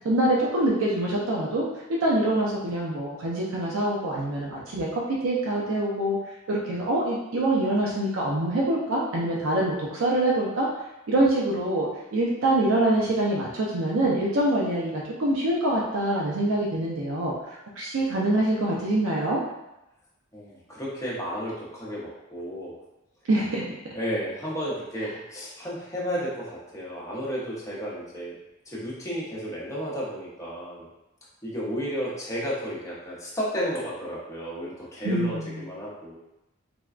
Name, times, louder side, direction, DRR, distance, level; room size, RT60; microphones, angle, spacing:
voice 1, 0.0-1.6 2.0-6.2 6.5-10.7 11.1-17.3 17.8-19.4 23.3-23.6 35.0-35.6, right 1 dB, 70° right, -4 dB, 0.5 m, -25 dB
voice 2, 20.3-22.7 23.9-28.4 28.7-30.9 31.4-36.2, equal, 15° left, -7 dB, 0.8 m, -32 dB
3.4 x 2.2 x 2.4 m, 0.92 s
head